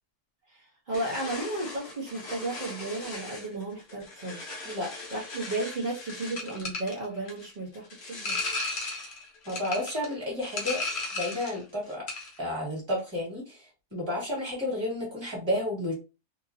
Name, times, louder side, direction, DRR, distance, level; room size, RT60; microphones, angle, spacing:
voice 1, 0.5-4.6 5.1-8.4, right 2 dB, 40° right, -6 dB, 0.7 m, -34 dB
sound 1, 0.9-11.6 11.9-12.4, left 3 dB, 50° left, 0.9 m, -37 dB
voice 2, 9.4-10.8 11.1-12.1 12.4-16.0, left 1 dB, 15° right, -4 dB, 1.6 m, -31 dB
2.9 x 2.5 x 2.6 m, 0.30 s
omnidirectional pair, 1.7 m